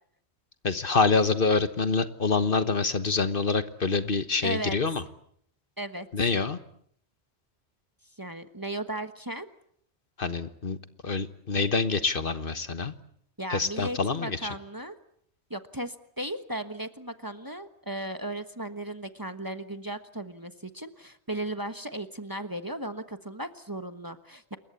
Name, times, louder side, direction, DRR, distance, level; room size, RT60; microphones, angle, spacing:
voice 1, 0.6-5.0 6.1-6.6 10.2-10.8 11.0-12.9 13.5-14.5, left 4 dB, 55° left, 11 dB, 1.5 m, -26 dB
voice 2, 4.4-4.8 5.8-6.1 8.2-9.5 13.4-15.0 15.5-24.6, right 1 dB, 20° right, 9 dB, 1.3 m, -36 dB
28.0 x 22.0 x 8.4 m, 0.66 s
omnidirectional pair, 1.1 m